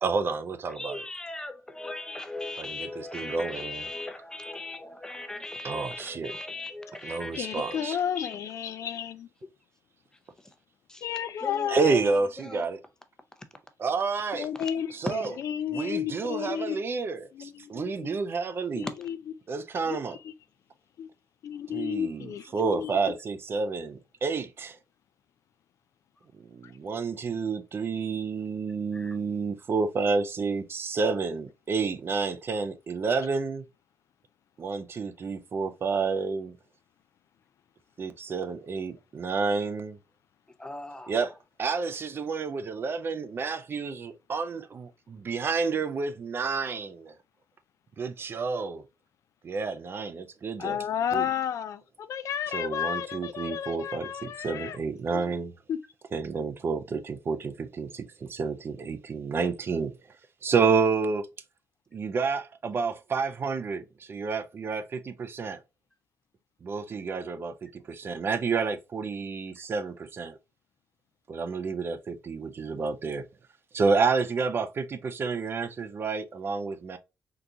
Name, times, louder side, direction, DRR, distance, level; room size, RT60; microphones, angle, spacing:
voice 1, 0.0-1.0 2.8-3.8 5.6-6.3 7.0-8.0 11.7-12.8 13.8-14.5 14.9-15.3 15.7-18.9 19.5-20.2 21.7-24.8 26.4-33.6 34.6-36.5 38.0-40.0 41.1-41.3 41.6-47.1 48.0-48.8 49.4-50.8 51.1-51.2 52.5-55.5 56.1-59.9 60.4-61.3 61.9-65.6 66.6-70.4 71.3-73.2 73.7-77.0, right 4 dB, 45° right, 0.4 m, -30 dB
voice 2, 0.7-8.5 10.4-10.5 10.9-12.7 13.4-13.5 14.5-15.0 28.9-29.2 40.6-41.3, left 2 dB, 10° left, 0.6 m, -39 dB
voice 3, 7.4-9.3 11.0-12.1 14.3-16.8 17.3-18.2 18.8-19.2 19.9-20.0 21.0-21.1 21.4-22.9 50.6-54.8 55.1-55.3 55.7-55.8, left 9 dB, 65° left, 0.4 m, -32 dB
3.8 x 2.4 x 2.7 m
cardioid pair, 90°, 6 cm